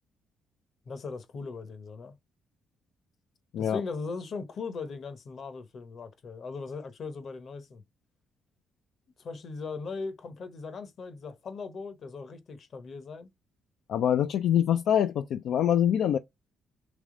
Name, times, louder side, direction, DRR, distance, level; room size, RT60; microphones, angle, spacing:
voice 1, 0.9-2.1 3.6-7.8 9.2-13.3, left 4 dB, 55° left, 0.9 m, -39 dB
voice 2, 13.9-16.2, left 10 dB, 75° left, 0.4 m, -24 dB
3.4 x 3.1 x 3.7 m
cardioid pair, 90°, 0 cm